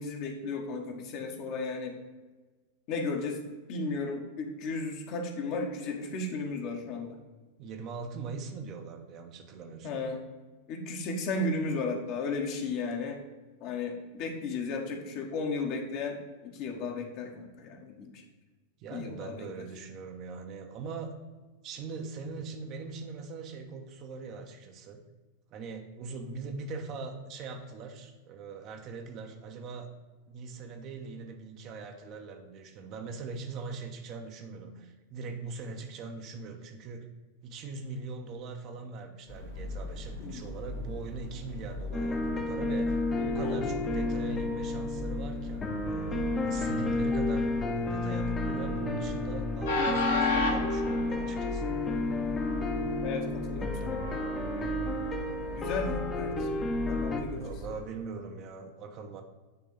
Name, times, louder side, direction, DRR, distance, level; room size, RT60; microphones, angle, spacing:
voice 1, 0.0-1.9 2.9-3.4 3.7-7.2 9.8-10.2 10.7-13.2 13.6-16.2 16.4-18.2 18.9-19.6 40.2-40.4 43.1-43.6 53.0-54.0 55.6-56.5 56.9-57.4, left 3 dB, 40° left, 2 dB, 1.3 m, -34 dB
voice 2, 7.6-10.0 18.8-21.1 21.6-25.0 25.5-29.9 30.3-37.1 37.4-47.5 47.8-51.7 57.4-59.2, right 4 dB, 35° right, 4 dB, 1.0 m, -41 dB
Train, 39.3-57.8, left 2 dB, 65° left, 1.4 m, -36 dB
sound 1, 41.9-57.2, left 2 dB, 20° left, 1.0 m, -31 dB
9.4 x 3.7 x 5.5 m, 1.3 s
figure-of-eight pair, 90°, 0 cm